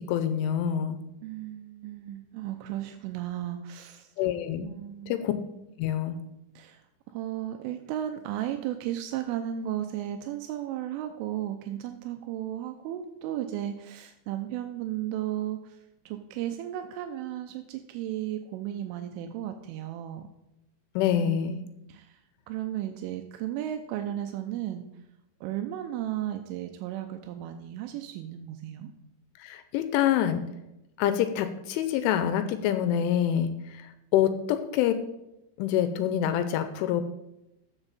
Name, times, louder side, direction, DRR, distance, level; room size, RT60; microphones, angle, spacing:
voice 1, 0.1-1.0 4.2-4.7 5.1-5.3 5.8-6.2 21.0-21.6 29.4-30.4 31.0-35.0 35.6-37.0, left 10 dB, 85° left, 10 dB, 3.0 m, -26 dB
voice 2, 1.2-4.1 4.6-5.2 6.6-6.8 7.1-15.8 16.1-20.3 21.2-22.2 22.5-24.8 25.4-28.9, right 12 dB, 85° right, 6 dB, 3.1 m, -34 dB
14.0 x 7.0 x 4.1 m, 0.90 s
omnidirectional pair, 5.8 m